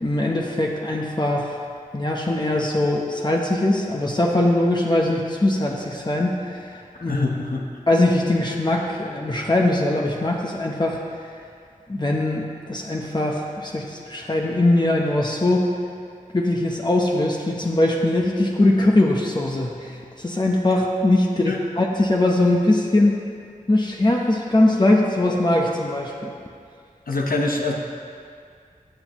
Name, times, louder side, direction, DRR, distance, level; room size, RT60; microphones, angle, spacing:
voice 1, 0.0-1.5 1.9-7.3 7.9-11.0 11.9-15.7 16.3-23.2 23.7-26.3, left 1 dB, 30° left, -1 dB, 1.0 m, -21 dB
voice 2, 7.1-7.7 21.5-21.6 27.1-27.8, left 2 dB, 85° left, 0 dB, 1.2 m, -24 dB
17.5 x 7.2 x 3.1 m, 2.3 s
wide cardioid pair, 55°, 14 cm